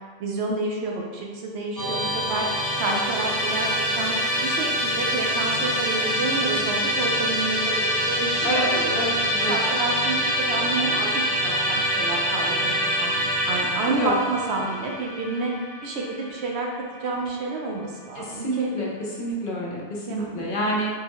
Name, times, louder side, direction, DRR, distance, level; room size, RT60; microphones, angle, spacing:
voice 1, 0.2-2.5 2.8-4.2 4.4-13.1 13.5-15.5 15.8-16.7 17.0-18.7 20.1-20.5, right 3 dB, 75° right, -1 dB, 0.8 m, -29 dB
Musical instrument, 1.8-16.9, equal, 30° left, 0.3 m, -25 dB
voice 2, 18.2-18.9 19.2-20.9, equal, 60° left, -3 dB, 0.7 m, -27 dB
3.6 x 2.2 x 2.9 m, 1.5 s
omnidirectional pair, 1.1 m